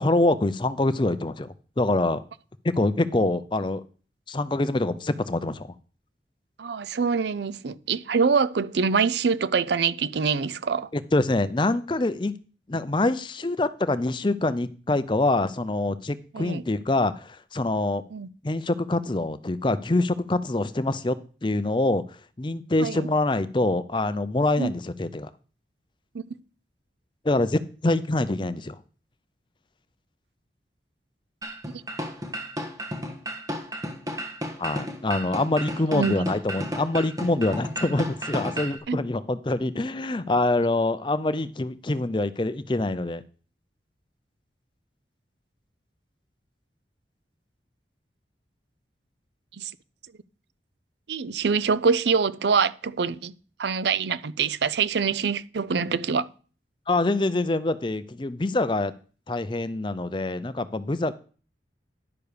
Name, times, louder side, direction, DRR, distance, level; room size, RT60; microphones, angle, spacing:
voice 1, 0.0-2.2 2.6-3.8 4.3-5.7 10.9-12.3 12.7-18.0 18.4-21.2 21.4-22.0 22.4-25.3 27.2-28.8 34.6-43.2 56.9-58.9 59.3-61.1, left 2 dB, 25° left, 0.5 m, -25 dB
voice 2, 6.6-10.9 16.3-16.6 18.1-18.3 22.8-23.1 24.6-24.7 26.1-26.2 31.7-31.8 35.9-36.3 38.9-39.0 49.6-49.7 51.1-53.3 53.6-56.3, right 5 dB, 70° right, 0.5 m, -25 dB
sound 1, 31.4-38.8, equal, 20° right, 1.4 m, -33 dB
11.0 x 6.8 x 5.1 m
head